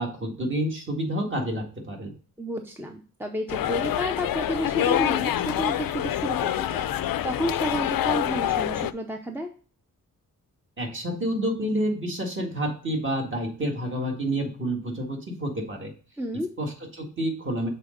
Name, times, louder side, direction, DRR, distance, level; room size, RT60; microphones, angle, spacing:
voice 1, 0.0-2.1 10.8-15.9 16.6-17.7, right 1 dB, 35° right, 1 dB, 1.9 m, -29 dB
voice 2, 2.4-9.5 16.2-16.5, equal, 5° right, 4 dB, 0.5 m, -31 dB
sound 1, 3.5-8.9, left 11 dB, 85° left, 0.5 m, -26 dB
6.7 x 4.1 x 5.0 m, 0.39 s
wide cardioid pair, 170°, 34 cm